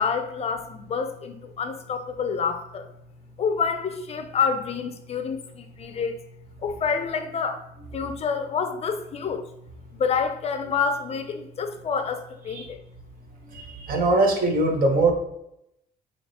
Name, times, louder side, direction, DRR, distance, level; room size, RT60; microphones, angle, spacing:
voice 1, 0.0-2.9 3.4-6.2 6.6-7.6 7.9-9.5 9.9-12.8, left 6 dB, 40° left, 8 dB, 0.4 m, -28 dB
voice 2, 13.5-15.1, right 2 dB, 60° right, 3 dB, 0.9 m, -21 dB
4.6 x 2.9 x 2.8 m, 0.80 s
cardioid pair, 110°, 17 cm